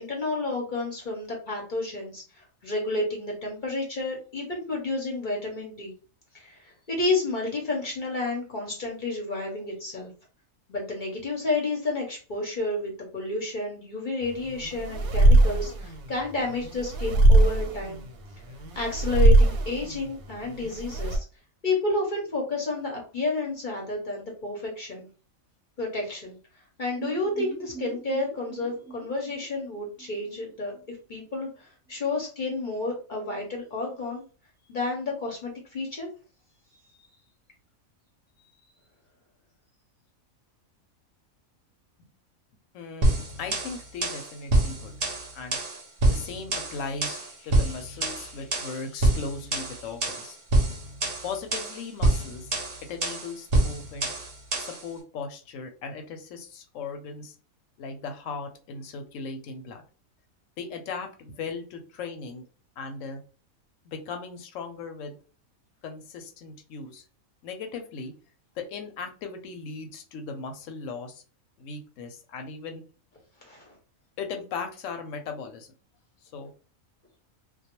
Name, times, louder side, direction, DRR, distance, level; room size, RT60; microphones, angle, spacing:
voice 1, 0.0-5.9 6.3-10.1 10.7-18.0 18.7-21.3 21.6-25.1 25.8-26.4 26.8-34.2 34.7-36.1 38.4-38.5 73.4-73.7, left 2 dB, 45° left, -1 dB, 0.7 m, -31 dB
sound 1, 14.2-21.2, right 1 dB, 90° right, 1.1 m, -22 dB
sound 2, 27.0-30.8 31.1-31.2 31.5-31.6, right 6 dB, 5° right, 0.7 m, -43 dB
voice 2, 42.7-44.9 45.3-45.6 46.1-50.4 51.2-52.5 52.9-54.1 54.6-57.3 57.8-59.8 60.6-62.4 62.8-63.2 63.8-65.2 65.8-67.0 67.4-68.1 68.6-71.2 71.6-72.8 74.2-75.7 76.2-76.5, left 4 dB, 70° left, 5 dB, 0.9 m, -38 dB
sound 3, 43.0-54.8, right 1 dB, 55° right, 0.7 m, -26 dB
2.2 x 2.2 x 2.9 m, 0.37 s
omnidirectional pair, 1.5 m